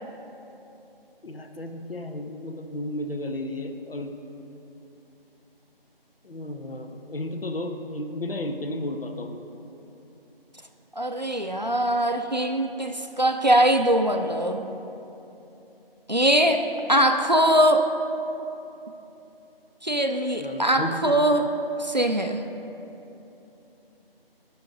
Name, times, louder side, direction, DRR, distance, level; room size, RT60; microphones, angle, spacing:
voice 1, 1.2-4.2 6.2-9.6 20.4-21.1, left 1 dB, 70° left, 5 dB, 0.7 m, -33 dB
voice 2, 11.0-14.6 16.1-16.6 16.9-17.9 19.8-21.5 21.8-22.4, right 1 dB, 45° right, 5 dB, 0.4 m, -22 dB
9.6 x 5.7 x 3.9 m, 3.0 s
figure-of-eight pair, 175°, 30 cm